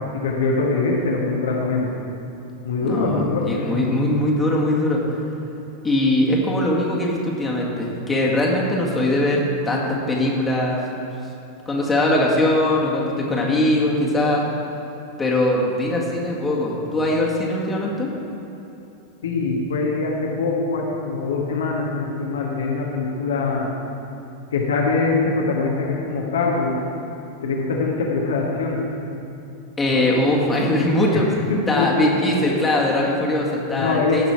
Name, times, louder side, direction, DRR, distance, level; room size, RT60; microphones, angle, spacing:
voice 1, 0.1-1.9 2.6-3.7 19.2-23.7 24.5-26.8 27.4-28.8 29.9-30.1 31.1-31.9 32.1-32.2 33.7-34.3, left 3 dB, 65° left, -2 dB, 1.4 m, -23 dB
voice 2, 2.8-5.2 5.8-10.8 11.7-14.4 15.2-18.1 29.8-31.3 31.7-34.3, left 1 dB, 15° left, -4 dB, 1.9 m, -21 dB
16.5 x 6.0 x 4.5 m, 2.9 s
figure-of-eight pair, 90°, 0 cm